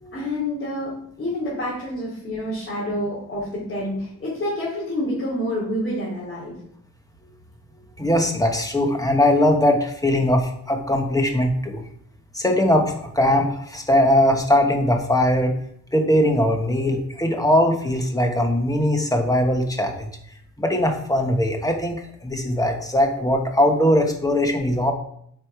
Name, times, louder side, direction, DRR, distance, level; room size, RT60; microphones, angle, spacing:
voice 1, 0.1-6.5, left 1 dB, 40° left, -8 dB, 2.8 m, -28 dB
voice 2, 8.0-11.8 12.3-15.5 15.9-20.1 20.6-24.9, left 1 dB, 10° left, 3 dB, 1.1 m, -20 dB
8.3 x 4.9 x 4.7 m, 0.70 s
wide cardioid pair, 160°, 32 cm